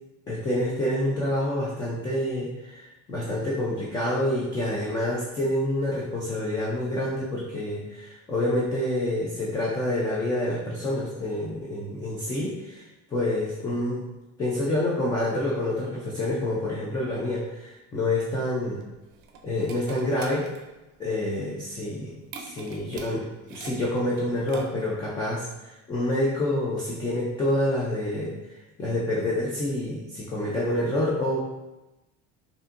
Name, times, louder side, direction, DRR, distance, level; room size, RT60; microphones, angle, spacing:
voice 1, 0.3-12.9 13.1-14.0 14.4-18.9 19.4-20.5 21.0-23.2 23.5-28.3 28.8-31.4, left 1 dB, 15° left, -5 dB, 0.3 m, -27 dB
sound 1, 18.6-25.1, right 5 dB, 65° right, 0.5 m, -45 dB
5.3 x 2.6 x 2.5 m, 1.0 s
cardioid pair, 170°, 31 cm